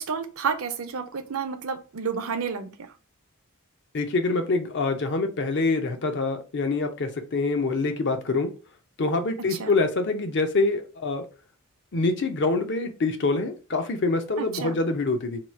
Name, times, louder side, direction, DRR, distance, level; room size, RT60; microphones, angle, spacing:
voice 1, 0.0-2.9 9.4-9.7 14.4-14.8, right 6 dB, 70° right, 0.6 m, -31 dB
voice 2, 3.9-8.5 9.0-11.2 11.9-15.4, left 3 dB, 55° left, 0.6 m, -25 dB
2.9 x 2.3 x 4.3 m
head